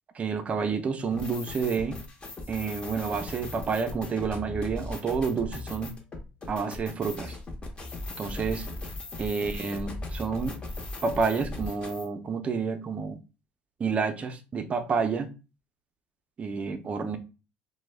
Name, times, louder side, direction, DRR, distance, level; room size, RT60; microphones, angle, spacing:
voice 1, 0.1-2.0 2.5-5.9 6.5-7.4 8.2-8.7 9.2-10.5 11.0-13.2 13.8-15.3 16.4-17.2, right 5 dB, 30° right, 0.4 m, -29 dB
sound 1, 1.1-12.1, left 2 dB, 25° left, 0.6 m, -38 dB
2.1 x 2.0 x 3.2 m
cardioid pair, 110°, 4 cm